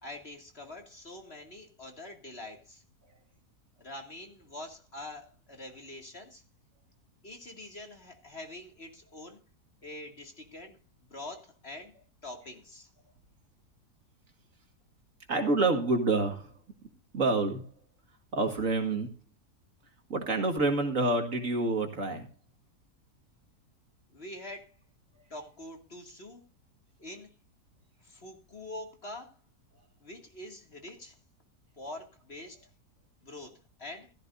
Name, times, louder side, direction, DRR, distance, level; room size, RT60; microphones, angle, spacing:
voice 1, 0.0-2.8 3.8-6.4 7.2-9.4 9.8-10.8 11.1-11.9 12.2-12.9 24.1-24.8 25.3-26.4 27.0-27.3 28.0-29.4 30.0-31.2 31.7-32.6 33.2-34.1, left 1 dB, 40° left, 3 dB, 2.6 m, -45 dB
voice 2, 15.3-16.5 17.1-17.7 18.3-19.2 20.1-22.3, right 3 dB, 55° right, 6 dB, 2.3 m, -27 dB
16.5 x 13.5 x 2.7 m, 0.31 s
omnidirectional pair, 1.7 m